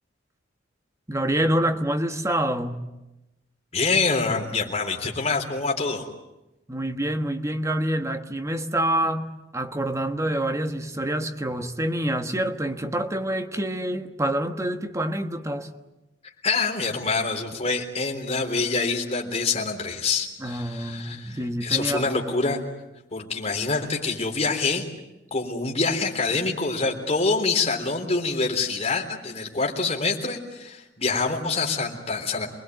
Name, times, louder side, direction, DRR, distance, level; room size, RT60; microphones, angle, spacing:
voice 1, 1.1-2.8 6.7-15.7 20.4-22.2, right 1 dB, 15° right, 1.4 m, -27 dB
voice 2, 3.7-6.1 16.4-22.6 23.1-24.9 25.3-32.5, left 4 dB, 35° left, 3.7 m, -26 dB
27.5 x 20.5 x 9.5 m
head